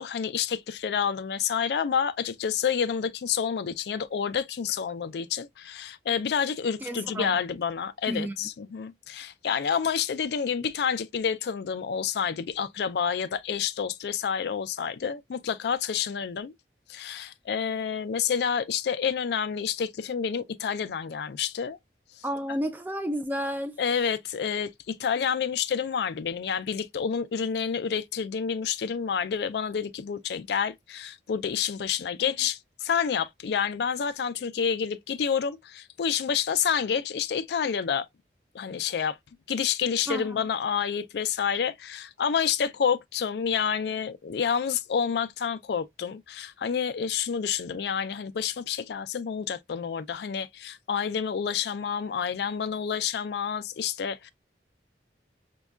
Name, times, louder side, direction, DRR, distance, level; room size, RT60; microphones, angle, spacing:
voice 1, 0.0-16.5 16.9-21.8 22.2-22.3 23.8-38.1 38.5-39.2 39.5-54.3, left 7 dB, 70° left, 0.3 m, -29 dB
voice 2, 6.8-7.4 8.1-8.4 22.2-23.7 32.3-32.4 40.1-40.4, equal, 10° right, 0.3 m, -31 dB
5.1 x 2.3 x 2.2 m
head